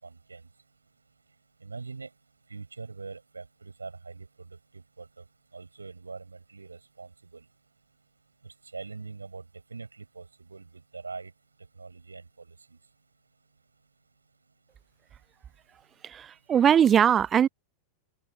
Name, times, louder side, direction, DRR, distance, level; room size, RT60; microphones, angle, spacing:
voice 1, 0.0-0.4 1.6-2.1 2.5-5.2 5.5-7.4 8.4-9.4 9.7-11.3 11.8-12.5, right 4 dB, 80° right, 6.2 m, -43 dB
voice 2, 16.0-17.5, right 9 dB, 25° right, 0.3 m, -21 dB
figure-of-eight pair, 90°, 0 cm